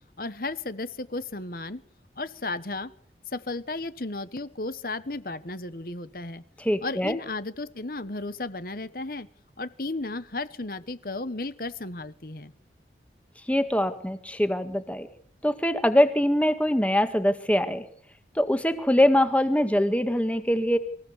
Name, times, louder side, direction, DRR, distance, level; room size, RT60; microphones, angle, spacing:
voice 1, 0.2-1.8 2.2-2.9 3.3-6.4 6.8-9.3 9.6-12.5, left 2 dB, 55° left, 14 dB, 1.3 m, -34 dB
voice 2, 6.6-7.2 13.5-15.1 15.4-17.8 18.4-20.8, left 1 dB, 10° left, 9 dB, 1.9 m, -23 dB
25.5 x 16.0 x 8.2 m, 0.63 s
head